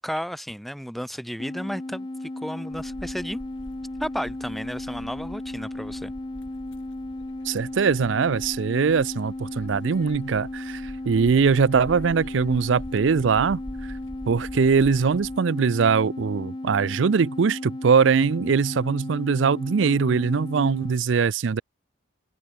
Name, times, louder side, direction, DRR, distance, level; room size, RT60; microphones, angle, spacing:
voice 1, 0.0-3.4 4.0-6.1, equal, ahead, 1.2 m, -33 dB
sound 1, 1.4-21.0, left 1 dB, 25° left, 0.6 m, -35 dB
sound 2, 2.7-15.4, equal, 80° left, 7.9 m, -45 dB
voice 2, 7.5-13.6 14.3-21.6, right 5 dB, 75° right, 0.5 m, -22 dB
open air
head